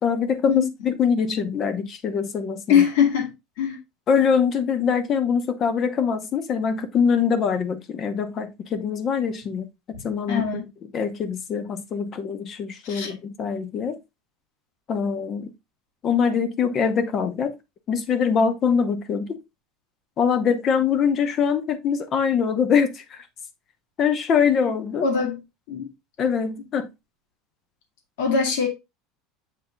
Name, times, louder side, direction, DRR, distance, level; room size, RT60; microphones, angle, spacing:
voice 1, 0.0-2.8 4.1-10.6 10.9-14.0 14.9-15.5 16.0-17.5 17.9-19.4 20.2-23.2 24.0-25.1 26.2-26.9, left 6 dB, 25° left, 0.8 m, -23 dB
voice 2, 2.7-3.3 3.6-3.8 10.3-10.7 12.8-13.1 24.5-24.7 25.0-25.4 25.7-25.9 28.2-28.7, left 7 dB, 80° left, 2.1 m, -22 dB
8.2 x 3.4 x 3.7 m
cardioid pair, 180°, 0 cm